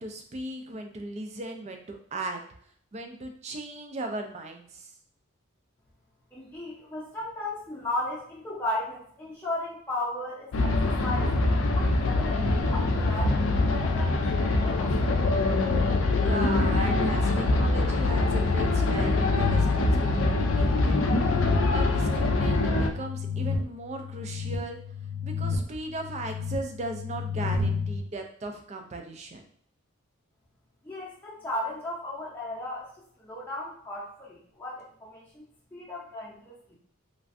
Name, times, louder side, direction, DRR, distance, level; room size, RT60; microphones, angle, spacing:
voice 1, 0.0-2.4 2.9-4.9 16.2-21.1 21.7-24.8 25.2-29.5, right 2 dB, 30° right, 5 dB, 0.3 m, -37 dB
voice 2, 6.3-11.3 11.7-15.2 30.8-32.9 33.2-35.5 35.7-36.7, left 1 dB, 10° left, -8 dB, 0.6 m, -36 dB
sound 1, 10.5-22.9, left 2 dB, 65° left, 0.4 m, -24 dB
sound 2, 18.8-28.0, left 5 dB, 50° right, 0.7 m, -33 dB
3.2 x 2.5 x 2.5 m, 0.62 s
head